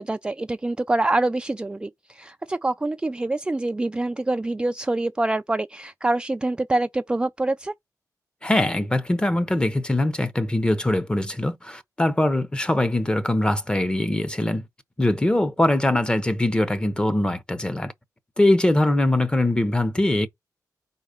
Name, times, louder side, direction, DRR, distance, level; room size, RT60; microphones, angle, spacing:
voice 1, 0.0-7.7, right 2 dB, 15° right, 0.3 m, -25 dB
voice 2, 8.4-14.6 15.0-17.9 18.4-20.3, left 1 dB, 15° left, 0.9 m, -22 dB
4.7 x 4.0 x 5.1 m
wide cardioid pair, 100°, 7 cm